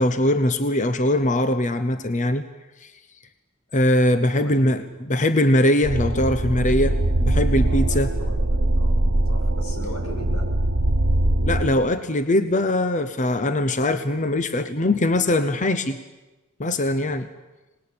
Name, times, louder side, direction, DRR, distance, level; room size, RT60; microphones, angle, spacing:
voice 1, 0.0-2.4 2.8-2.9 3.7-7.0 7.2-8.1 11.5-16.0 16.6-17.3, left 1 dB, 35° left, 10 dB, 0.9 m, -21 dB
voice 2, 4.3-4.9 7.6-8.9 9.3-10.5, left 1 dB, 90° left, 4 dB, 5.8 m, -39 dB
sound 1, 5.8-11.8, right 1 dB, 60° right, 1.1 m, -22 dB
25.5 x 20.0 x 8.8 m, 1.1 s
head